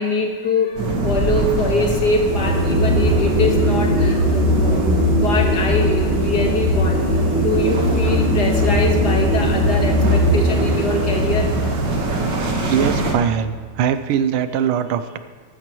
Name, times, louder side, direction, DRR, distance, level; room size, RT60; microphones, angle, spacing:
voice 1, 0.0-11.5 12.5-12.6, left 2 dB, 55° left, 1 dB, 1.9 m, -23 dB
sound 1, 0.7-13.1, right 2 dB, 60° right, 2.0 m, -25 dB
sound 2, 2.1-13.5, equal, 30° left, 1.5 m, -19 dB
voice 2, 12.7-15.2, right 8 dB, 85° right, 11 dB, 1.5 m, -21 dB
14.5 x 13.0 x 3.0 m, 1.5 s
omnidirectional pair, 2.3 m